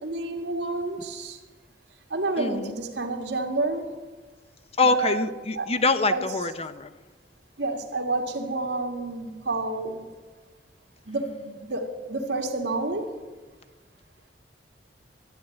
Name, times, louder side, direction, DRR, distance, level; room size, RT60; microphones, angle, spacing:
voice 1, 0.0-1.4 2.1-3.9 4.8-5.2 5.6-5.7 6.1-6.2 7.6-10.1 11.1-13.1, right 2 dB, 80° right, 3 dB, 1.9 m, -29 dB
voice 2, 2.4-2.8 4.8-6.9, left 3 dB, 35° left, 11 dB, 0.7 m, -25 dB
13.0 x 8.6 x 9.2 m, 1.3 s
head